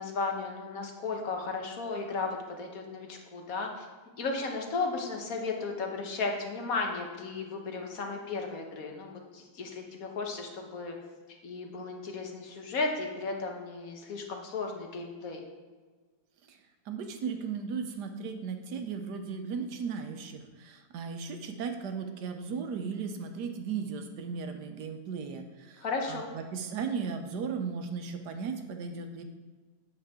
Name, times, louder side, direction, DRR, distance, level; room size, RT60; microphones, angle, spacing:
voice 1, 0.0-3.9 4.2-10.9 11.4-15.4 25.8-26.3, left 3 dB, 55° left, 2 dB, 1.6 m, -35 dB
voice 2, 16.9-29.2, right 5 dB, 75° right, 6 dB, 1.4 m, -36 dB
8.9 x 7.7 x 3.7 m, 1.4 s
omnidirectional pair, 1.8 m